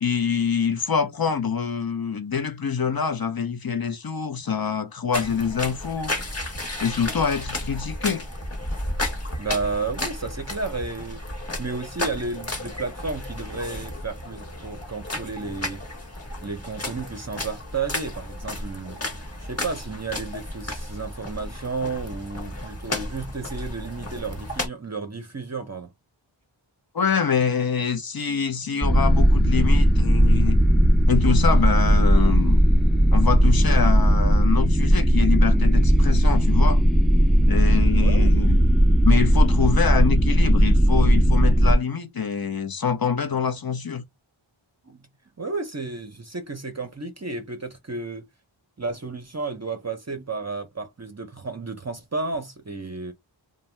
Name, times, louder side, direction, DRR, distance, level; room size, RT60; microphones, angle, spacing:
voice 1, 0.0-6.1 6.8-8.2 26.9-30.6 31.1-32.6 33.1-36.8 37.5-38.6 39.0-44.0, left 6 dB, 50° left, 0.7 m, -25 dB
sound 1, 5.1-24.7, left 1 dB, 30° left, 1.1 m, -33 dB
voice 2, 9.4-11.2 11.6-15.8 16.4-19.0 19.4-25.9 38.0-38.3 44.9-45.1 45.4-48.3 48.8-53.1, right 4 dB, 35° right, 0.6 m, -32 dB
sound 2, 28.8-41.7, equal, ahead, 0.3 m, -17 dB
2.6 x 2.2 x 3.2 m
wide cardioid pair, 40°, 49 cm